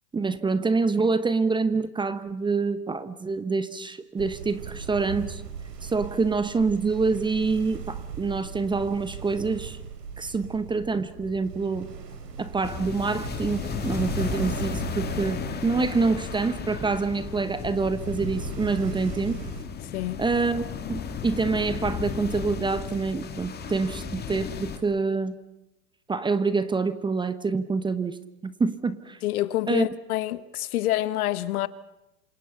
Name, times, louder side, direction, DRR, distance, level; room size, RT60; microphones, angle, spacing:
voice 1, 0.1-5.4 5.8-9.8 10.2-11.9 12.4-19.4 20.2-25.3 26.1-29.2 29.7-29.9, right 4 dB, 10° right, 1.0 m, -26 dB
sound 1, 4.2-19.6, right 7 dB, 80° right, 4.2 m, -39 dB
sound 2, 12.6-24.8, left 6 dB, 20° left, 2.5 m, -34 dB
voice 2, 29.2-31.7, left 15 dB, 65° left, 1.4 m, -27 dB
28.0 x 26.5 x 5.7 m
hypercardioid pair, 120°, 48 cm